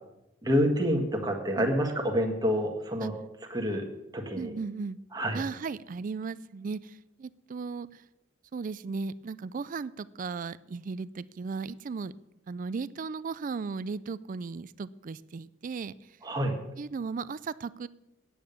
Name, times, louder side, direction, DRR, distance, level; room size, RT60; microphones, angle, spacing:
voice 1, 0.4-3.1 3.5-3.8 4.1-4.5 5.1-5.4 16.2-16.5, equal, 20° right, 2 dB, 1.5 m, -27 dB
voice 2, 4.4-5.0 5.3-8.0 8.5-12.1 12.5-15.9 16.8-17.9, right 4 dB, 45° right, 18 dB, 0.4 m, -36 dB
9.4 x 8.6 x 6.8 m, 0.90 s
head